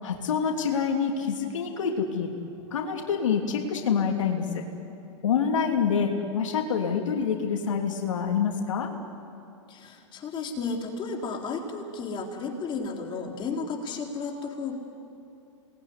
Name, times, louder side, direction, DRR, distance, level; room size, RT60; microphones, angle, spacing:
voice 1, 0.0-2.3 2.7-4.4 5.2-8.9, left 6 dB, 80° left, 2 dB, 3.0 m, -26 dB
voice 2, 9.7-14.7, left 4 dB, 30° left, 1 dB, 4.0 m, -33 dB
28.5 x 20.5 x 9.8 m, 2.7 s
hypercardioid pair, 110°, 16 cm